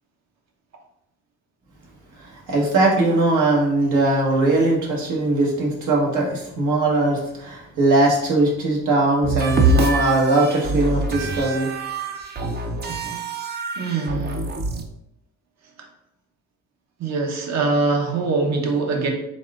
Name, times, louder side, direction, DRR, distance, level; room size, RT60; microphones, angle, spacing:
voice 1, 2.5-11.7, right 2 dB, 80° right, -3 dB, 1.3 m, -20 dB
sound 1, 9.2-14.8, right 3 dB, 35° right, 0.5 m, -25 dB
voice 2, 13.8-14.4 17.0-19.1, right 3 dB, 60° right, 2 dB, 1.0 m, -23 dB
4.1 x 3.7 x 2.4 m, 0.81 s
cardioid pair, 90°, 30 cm